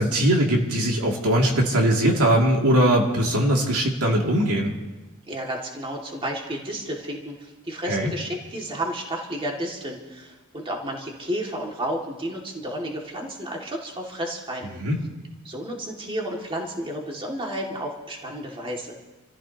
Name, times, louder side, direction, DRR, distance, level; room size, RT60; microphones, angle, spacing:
voice 1, 0.0-4.7 7.8-8.1 14.8-15.0, right 1 dB, 80° right, -1 dB, 2.5 m, -21 dB
voice 2, 5.3-14.8 15.4-18.9, right 1 dB, 25° right, -1 dB, 2.1 m, -32 dB
28.5 x 14.5 x 2.9 m, 1.2 s
head